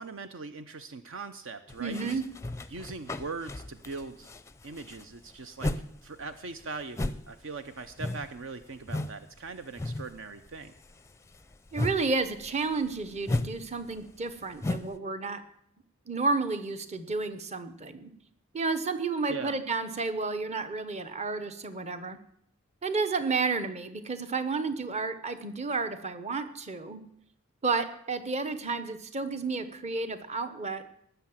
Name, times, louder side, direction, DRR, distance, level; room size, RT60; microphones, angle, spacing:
voice 1, 0.0-2.2 2.7-4.3 4.6-5.7 6.0-10.7 19.3-19.6, right 4 dB, 60° right, 10 dB, 0.7 m, -40 dB
sound 1, 1.7-5.9 6.2-9.2 9.5-10.2 10.5-15.0, left 2 dB, 15° left, 0.5 m, -35 dB
voice 2, 1.8-2.3 11.7-15.4 16.1-18.1 18.5-22.2 22.8-27.0 27.6-30.8, right 4 dB, 30° right, 10 dB, 1.1 m, -31 dB
18.5 x 6.9 x 7.3 m, 0.70 s
head